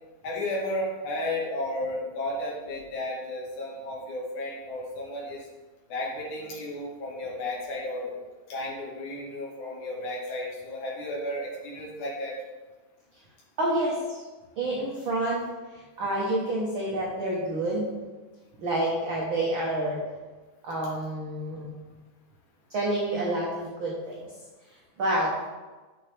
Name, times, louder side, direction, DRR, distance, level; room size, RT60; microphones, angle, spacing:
voice 1, 0.2-5.5 5.9-8.1 8.5-12.4, left 1 dB, 75° left, -5 dB, 3.3 m, -33 dB
voice 2, 13.6-14.2 14.6-17.9 18.6-20.0 20.6-21.8 22.7-24.3 25.0-25.3, right 1 dB, 55° right, -4 dB, 1.6 m, -28 dB
10.0 x 6.0 x 3.4 m, 1.3 s
omnidirectional pair, 3.5 m